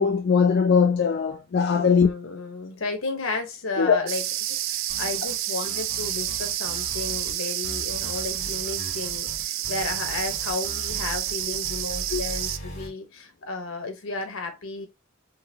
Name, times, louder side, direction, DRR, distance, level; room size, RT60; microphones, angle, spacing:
voice 1, 0.0-2.1 3.8-4.0 12.1-12.2, left 6 dB, 55° left, 0.4 m, -20 dB
voice 2, 1.7-4.2 4.5-14.9, left 3 dB, 90° left, 1.1 m, -33 dB
sound 1, 4.1-12.6, right 13 dB, 70° right, 0.3 m, -29 dB
sound 2, 4.9-5.4 5.6-7.4 7.6-12.9, equal, 35° left, 2.1 m, -39 dB
3.9 x 3.0 x 2.8 m
head